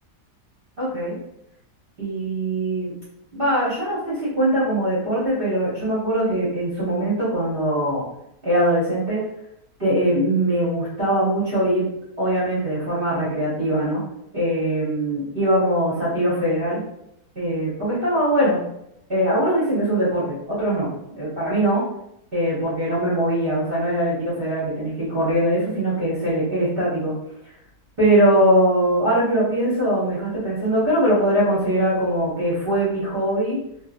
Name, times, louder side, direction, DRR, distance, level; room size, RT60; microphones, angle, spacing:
voice 1, 0.8-1.2 2.0-2.9 3.3-8.0 8.4-9.2 9.8-11.9 12.2-14.0 14.3-16.8 17.3-18.6 19.1-20.9 21.1-21.8 22.3-27.1 28.0-33.6, right 1 dB, 40° right, -8 dB, 0.9 m, -21 dB
2.7 x 2.6 x 2.5 m, 0.79 s
omnidirectional pair, 1.8 m